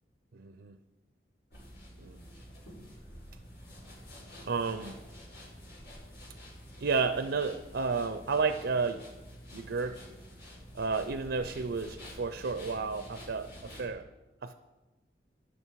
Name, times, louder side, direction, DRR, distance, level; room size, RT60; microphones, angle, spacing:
voice 1, 0.3-0.8 2.0-2.2 4.4-5.0 6.8-9.1 9.5-10.0 10.7-14.0 14.4-14.5, right 4 dB, 85° right, 10 dB, 0.6 m, -32 dB
sound 1, 1.5-13.9, equal, 80° left, 4.9 m, -49 dB
12.5 x 10.0 x 4.7 m, 1.2 s
head